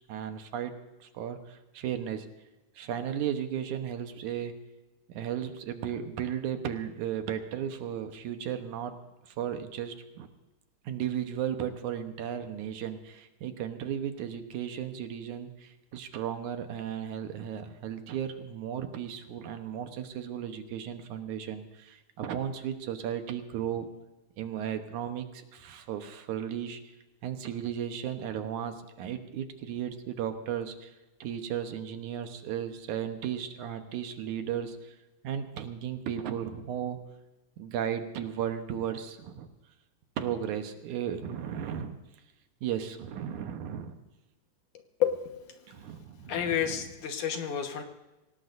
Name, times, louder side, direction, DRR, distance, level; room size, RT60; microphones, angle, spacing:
voice 1, 0.1-0.7 1.0-2.3 2.8-4.5 5.1-9.0 9.3-10.3 10.8-23.9 24.4-26.8 27.2-30.9 31.2-35.0 35.2-37.0 37.6-39.5 40.2-42.0 42.6-44.0 45.7-46.8, right 9 dB, 75° right, 7 dB, 2.4 m, -35 dB
voice 2, 46.3-47.8, left 9 dB, 70° left, 5 dB, 2.7 m, -29 dB
25.5 x 18.0 x 2.6 m, 1.0 s
omnidirectional pair, 3.7 m